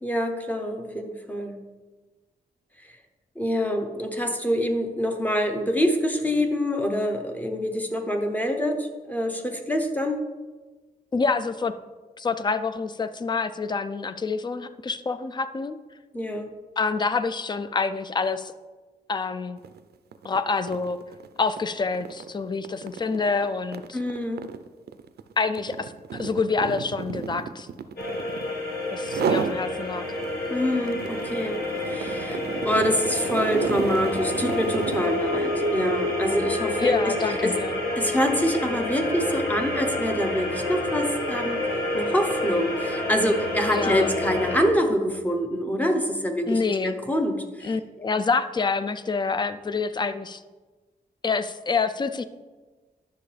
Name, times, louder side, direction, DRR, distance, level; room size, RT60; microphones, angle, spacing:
voice 1, 0.0-1.6 3.4-10.3 16.1-16.5 23.9-24.4 30.5-31.6 31.9-32.4 32.6-37.1 37.4-37.5 37.9-41.6 41.9-47.7, equal, 10° left, 4 dB, 0.8 m, -26 dB
voice 2, 11.1-11.7 12.2-15.8 16.8-18.5 19.1-19.6 20.2-21.0 21.4-24.0 25.4-27.7 28.9-30.2 36.8-37.8 43.7-44.1 46.5-46.9 47.6-50.4 51.2-52.2, left 4 dB, 30° left, 12 dB, 0.4 m, -27 dB
sound 1, 19.6-19.8 20.1-28.6 29.0-29.6 30.0-35.2, right 7 dB, 85° right, 0.5 m, -32 dB
sound 2, 28.0-44.6, left 1 dB, 75° left, 1.5 m, -28 dB
10.0 x 6.7 x 3.3 m, 1.3 s
wide cardioid pair, 150°, 16 cm